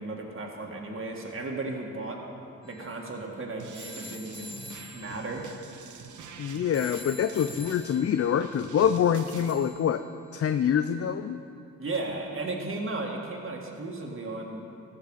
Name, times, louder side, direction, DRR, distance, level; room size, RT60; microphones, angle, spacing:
voice 1, 0.0-2.2 2.6-4.6 4.9-5.5 11.8-14.7, right 2 dB, 40° right, -1 dB, 2.0 m, -35 dB
sound 1, 2.6-10.7, left 2 dB, 15° left, 1.2 m, -48 dB
sound 2, 3.6-9.5, right 6 dB, 65° right, 0.9 m, -46 dB
voice 2, 6.4-10.0 10.3-11.4, left 8 dB, 45° left, 10 dB, 0.5 m, -25 dB
15.5 x 6.5 x 5.6 m, 2.7 s
supercardioid pair, 50°, 33 cm